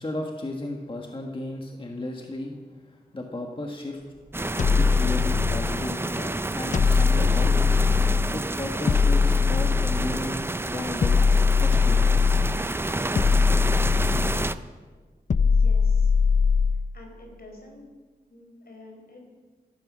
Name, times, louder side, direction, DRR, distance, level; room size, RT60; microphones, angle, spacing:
voice 1, 0.0-4.2 4.8-7.6 8.3-11.2 11.6-12.4, left 2 dB, 30° left, 1 dB, 1.5 m, -34 dB
sound 1, 4.0-9.0, right 2 dB, 45° right, 1.6 m, -45 dB
sound 2, 4.3-14.6, right 2 dB, 15° right, 0.5 m, -29 dB
sound 3, 4.6-5.9 6.7-8.4 8.9-10.3 11.0-12.6 13.2-14.6 15.3-16.9, left 5 dB, 50° left, 0.5 m, -21 dB
voice 2, 15.4-16.1 16.9-17.8 18.3-19.3, left 2 dB, 70° left, 1 dB, 4.6 m, -47 dB
15.0 x 14.5 x 6.3 m, 1.4 s
wide cardioid pair, 120°, 16 cm